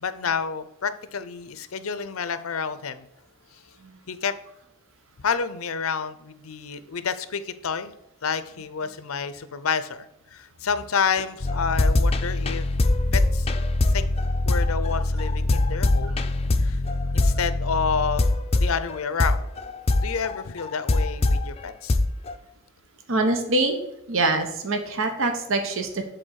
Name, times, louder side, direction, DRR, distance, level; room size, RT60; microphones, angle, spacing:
voice 1, 0.0-3.1 4.1-4.3 5.2-7.9 8.2-12.8 13.1-13.5 13.8-14.1 14.4-16.3 16.6-16.8 17.1-19.4 20.0-22.0, left 6 dB, 85° left, 13 dB, 0.6 m, -29 dB
sound 1, 11.4-21.4 21.9-22.3, left 2 dB, 30° left, 0.5 m, -23 dB
voice 2, 23.1-23.8 24.1-26.0, right 2 dB, 65° right, 5 dB, 1.0 m, -25 dB
7.8 x 3.9 x 6.4 m, 0.85 s
head